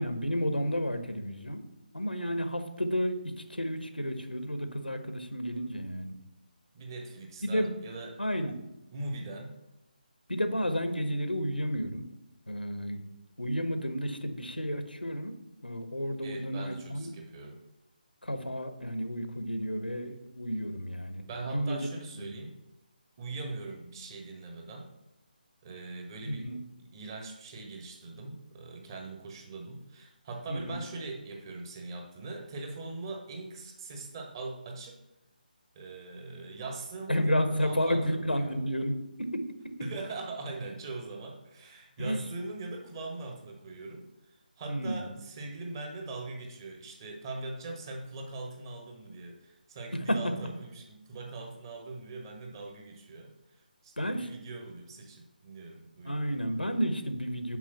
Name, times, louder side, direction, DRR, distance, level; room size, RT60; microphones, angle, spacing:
voice 1, 0.0-1.6 1.9-3.2 3.5-6.2 7.4-7.7 8.2-8.5 10.3-12.0 12.5-13.0 13.4-15.3 15.6-17.1 18.2-21.9 22.2-22.3 26.2-26.6 30.5-30.8 37.1-39.7 42.0-42.2 44.7-45.1 50.1-50.2 54.0-54.3 56.0-57.6, equal, 85° left, 8 dB, 1.1 m, -31 dB
voice 2, 6.7-8.2 8.9-9.5 16.2-17.6 21.3-22.6 23.2-24.9 25.6-26.5 26.8-35.0 35.7-38.7 39.8-44.1 44.6-53.3 53.8-56.5, right 3 dB, 25° right, 2 dB, 1.2 m, -41 dB
6.2 x 5.0 x 5.7 m, 0.91 s
figure-of-eight pair, 150°, 5 cm